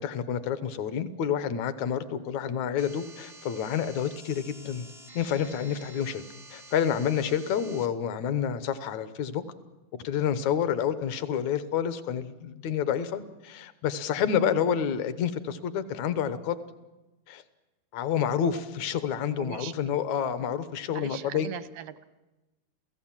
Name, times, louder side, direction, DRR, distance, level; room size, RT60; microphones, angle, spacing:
voice 1, 0.0-4.9 5.2-6.2 6.5-9.4 10.0-16.6 17.3-17.4 17.9-21.5, left 8 dB, 65° left, 11 dB, 1.9 m, -29 dB
sound 1, 2.8-7.9, right 1 dB, 30° right, 0.4 m, -49 dB
voice 2, 19.4-19.7 20.9-22.0, right 9 dB, 85° right, 12 dB, 2.8 m, -40 dB
29.5 x 16.5 x 7.4 m, 1.1 s
omnidirectional pair, 4.4 m